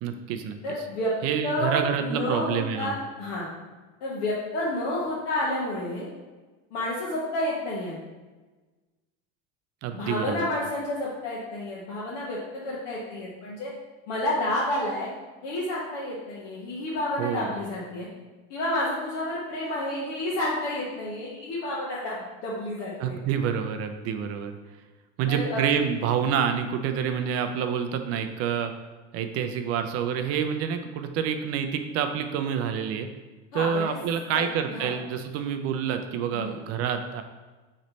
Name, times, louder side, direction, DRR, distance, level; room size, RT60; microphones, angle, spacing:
voice 1, 0.0-0.6 1.2-2.9 9.8-10.5 17.2-17.6 23.0-24.6 25.2-28.7 29.1-33.1 33.5-37.2, right 8 dB, 45° right, 7 dB, 0.4 m, -28 dB
voice 2, 0.6-1.1 1.4-3.5 4.0-6.1 6.7-7.9 9.9-13.7 14.1-15.1 15.4-18.1 18.5-23.2 25.3-25.6 33.5-34.0 34.3-34.4 34.7-34.9 36.3-36.6, left 1 dB, 85° left, -6 dB, 1.1 m, -30 dB
4.2 x 3.2 x 3.9 m, 1.2 s
supercardioid pair, 140°, 35 cm